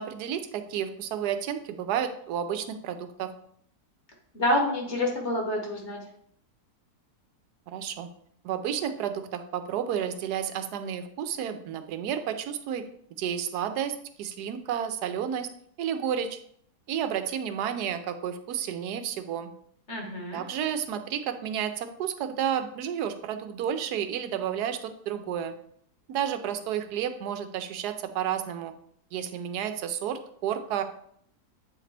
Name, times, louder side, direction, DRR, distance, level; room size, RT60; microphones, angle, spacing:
voice 1, 0.0-3.3 7.7-8.1 8.4-12.8 13.2-15.5 15.8-16.4 16.9-19.5 20.3-25.5 26.1-28.7 29.1-30.8, right 9 dB, 85° right, 9 dB, 1.1 m, -31 dB
voice 2, 4.3-6.0 19.9-20.4, left 1 dB, 45° left, 0 dB, 1.5 m, -27 dB
7.9 x 3.8 x 3.3 m, 0.66 s
omnidirectional pair, 1.7 m